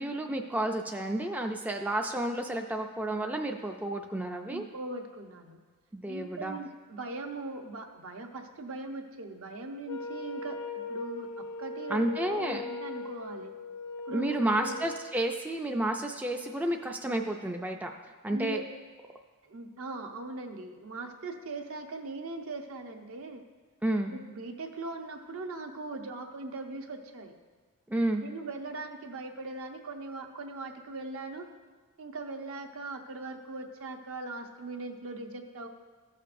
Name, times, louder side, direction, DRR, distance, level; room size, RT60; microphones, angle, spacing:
voice 1, 0.0-4.6 5.9-6.6 11.9-12.6 14.1-17.9 18.2-18.6 23.8-24.1 27.9-28.2, right 1 dB, 5° right, 3 dB, 0.3 m, -31 dB
voice 2, 4.4-5.6 6.1-10.6 10.9-13.5 14.1-14.8 18.3-18.6 19.4-23.4 24.1-27.3 28.2-31.5 32.0-35.7, right 2 dB, 65° right, 4 dB, 0.8 m, -40 dB
Wind instrument woodwind instrument, 9.8-15.1, left 3 dB, 70° left, 0.6 m, -39 dB
14.0 x 6.5 x 2.5 m, 1.4 s
head